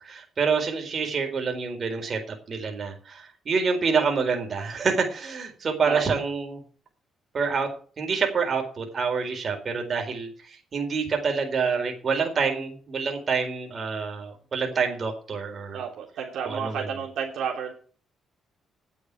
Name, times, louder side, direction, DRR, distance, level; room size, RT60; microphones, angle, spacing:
voice 1, 0.0-6.6 7.3-7.7 8.0-15.8 16.5-16.9, right 5 dB, 45° right, 3 dB, 4.2 m, -27 dB
voice 2, 15.7-17.7, right 7 dB, 75° right, -1 dB, 3.2 m, -31 dB
10.0 x 7.8 x 8.3 m, 0.42 s
cardioid pair, 90°, 0 cm